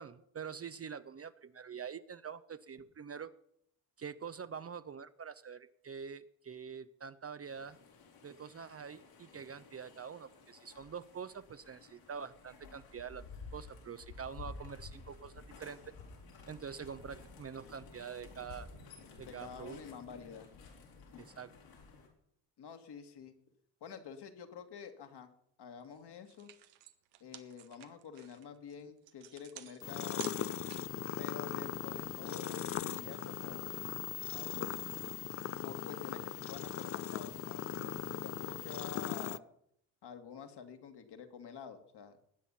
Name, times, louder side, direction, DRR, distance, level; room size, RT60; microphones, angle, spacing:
voice 1, 0.0-3.3 4.0-7.8 8.2-15.9 16.5-18.7 19.2-19.8 21.2-21.5, right 7 dB, 30° right, 13 dB, 0.7 m, -45 dB
sound 1, 7.5-22.1, left 4 dB, 75° left, 4.1 m, -53 dB
voice 2, 19.2-20.5 22.6-23.3 23.8-25.3 25.6-26.5 27.2-30.6 31.2-33.8 34.3-34.8 35.6-39.4 40.0-42.2, left 7 dB, 50° left, 6 dB, 2.1 m, -49 dB
sound 2, 25.8-26.0 26.2-31.0, right 13 dB, 80° right, 1.1 m, -51 dB
sound 3, 29.8-39.4, left 11 dB, 30° left, 0.5 m, -39 dB
20.0 x 8.5 x 5.7 m, 0.72 s
hypercardioid pair, 50°, 50 cm